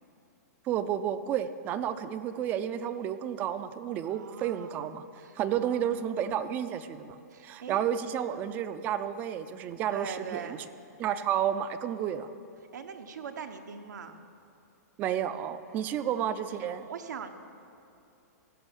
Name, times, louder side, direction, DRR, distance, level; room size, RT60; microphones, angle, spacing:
voice 1, 0.6-5.1 5.4-10.6 11.0-12.3 15.0-16.9, right 9 dB, 20° right, 12 dB, 0.4 m, -31 dB
voice 2, 4.0-4.8 5.2-6.5 7.3-7.8 9.9-10.6 12.7-14.2 16.0-16.3 16.8-17.3, right 7 dB, 85° right, 6 dB, 0.9 m, -42 dB
16.0 x 6.1 x 7.3 m, 2.7 s
hypercardioid pair, 160°, 9 cm